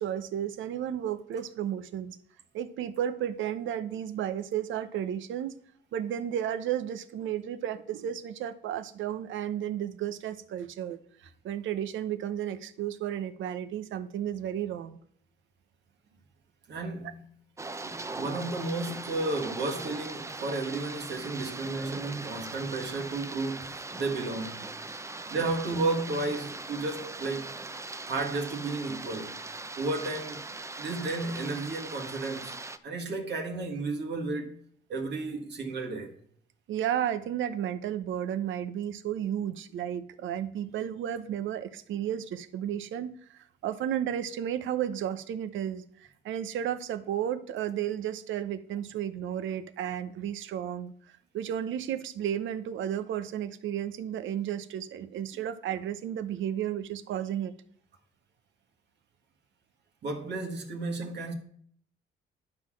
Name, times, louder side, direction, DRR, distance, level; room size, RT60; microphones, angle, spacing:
voice 1, 0.0-2.2 2.5-5.6 5.9-15.0 25.2-25.3 36.7-57.5, right 10 dB, 75° right, 0.7 m, -33 dB
voice 2, 16.7-17.2 17.8-24.7 25.3-27.5 28.1-29.4 29.8-30.4 30.8-32.6 32.8-34.6 34.9-36.2 60.0-61.3, right 3 dB, 60° right, 1.6 m, -33 dB
sound 1, 17.6-32.8, right 3 dB, 15° right, 0.5 m, -40 dB
11.5 x 3.9 x 6.1 m
cardioid pair, 90°, 20 cm